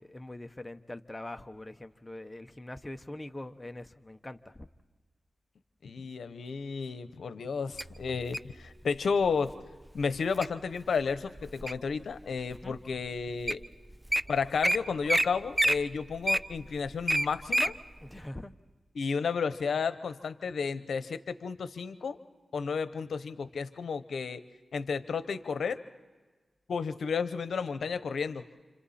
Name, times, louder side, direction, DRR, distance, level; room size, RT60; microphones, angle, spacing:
voice 1, 0.0-4.7 12.6-12.7 18.0-18.5, left 1 dB, 15° left, 7 dB, 1.0 m, -43 dB
voice 2, 5.8-9.5 9.9-13.6 14.3-17.8 18.9-22.2 22.5-24.4 24.7-25.8 26.7-28.4, left 5 dB, 85° left, 12 dB, 0.9 m, -32 dB
Wild animals, 7.8-8.5 9.2-9.5 10.0-10.5 11.0-11.9 12.5-12.6 13.2-13.3 13.5-13.6 13.9-14.2 14.6-14.8 15.1-15.3 15.5-17.7 18.2-18.3, right 1 dB, 10° right, 0.6 m, -27 dB
29.0 x 27.5 x 4.3 m, 1.3 s
cardioid pair, 65°, 0 cm